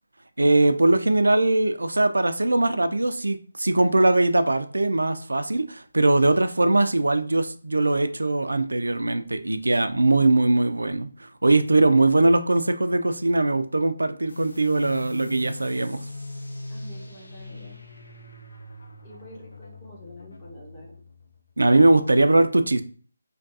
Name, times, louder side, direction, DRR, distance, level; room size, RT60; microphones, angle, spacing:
voice 1, 0.4-16.0 21.6-22.8, right 2 dB, 85° right, 9 dB, 0.4 m, -21 dB
sound 1, 14.3-21.5, left 2 dB, 70° left, 0.7 m, -40 dB
voice 2, 16.7-17.8 19.0-20.9, equal, 20° left, -5 dB, 1.0 m, -46 dB
3.4 x 2.2 x 2.6 m, 0.42 s
figure-of-eight pair, 155°, 0 cm